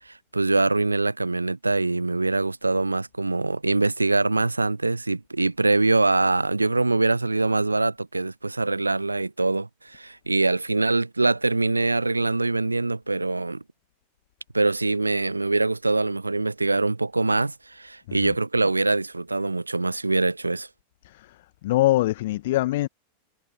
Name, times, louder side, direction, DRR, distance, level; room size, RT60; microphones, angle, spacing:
voice 1, 0.1-13.6 14.5-20.7, right 2 dB, 80° right, 0.9 m, -23 dB
voice 2, 21.6-22.9, left 16 dB, 55° left, 1.3 m, -22 dB
figure-of-eight pair, 90°, 0 cm